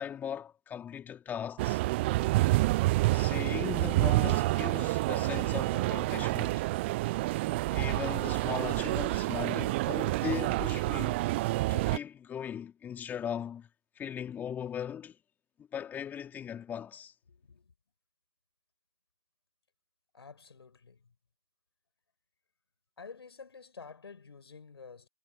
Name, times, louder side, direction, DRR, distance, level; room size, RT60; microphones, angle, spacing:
voice 1, 0.0-1.8 3.1-6.6 7.7-11.2 11.7-13.7 13.9-15.2 15.6-17.1, left 8 dB, 15° left, 3.1 m, -38 dB
sound 1, 1.6-12.0, right 19 dB, 25° right, 0.4 m, -28 dB
voice 2, 17.3-17.7 20.1-21.1 23.0-25.1, left 5 dB, 75° left, 7.1 m, -50 dB
hypercardioid pair, 140°, 13 cm